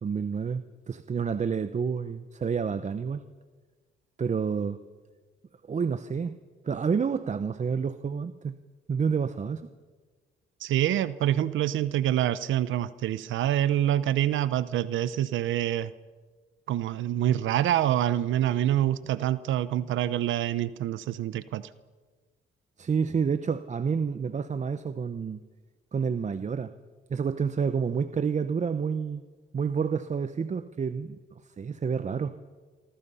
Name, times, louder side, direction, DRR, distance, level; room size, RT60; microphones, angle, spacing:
voice 1, 0.0-3.2 4.2-4.8 5.7-6.3 6.6-8.5 8.9-9.7 19.0-19.2 22.8-25.4 25.9-26.7 27.1-29.2 29.5-31.2 31.6-32.4, right 6 dB, 35° right, 12 dB, 1.0 m, -29 dB
voice 2, 10.6-15.9 16.7-21.7, right 12 dB, 75° right, 15 dB, 0.8 m, -26 dB
26.5 x 24.5 x 5.6 m, 1.4 s
cardioid pair, 90°, 20 cm